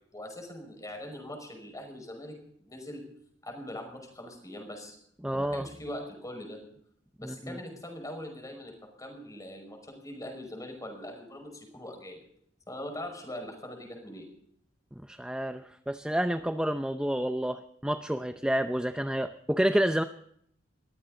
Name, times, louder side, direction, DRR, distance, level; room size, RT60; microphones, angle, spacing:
voice 1, 0.1-3.0 3.4-5.0 5.3-6.6 7.2-12.2 12.7-14.3, left 1 dB, 20° left, 4 dB, 5.5 m, -42 dB
voice 2, 5.2-5.7 7.2-7.6 15.1-20.0, right 1 dB, 5° right, 8 dB, 0.6 m, -29 dB
21.5 x 15.5 x 3.9 m, 0.68 s
head